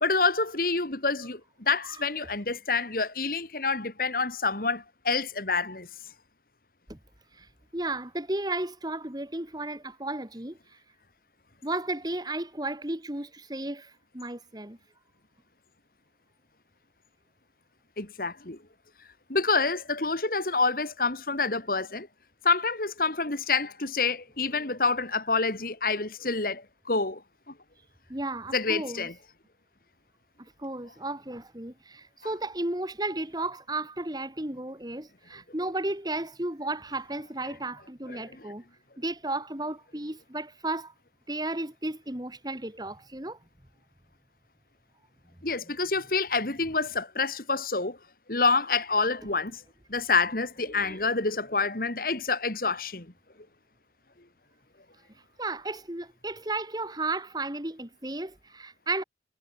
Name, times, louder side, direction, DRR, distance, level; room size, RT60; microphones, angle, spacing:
voice 1, 0.0-5.9 18.0-18.6 19.3-22.1 22.4-27.2 27.5-27.6 28.5-29.1 38.1-38.5 45.4-48.0 48.3-49.6 49.9-53.1, left 4 dB, 55° left, 2.5 m, -27 dB
voice 2, 7.3-10.6 11.6-14.8 28.1-29.1 30.4-38.6 39.0-40.9 41.3-43.4 50.7-51.0 55.4-59.0, right 2 dB, 25° right, 2.5 m, -34 dB
head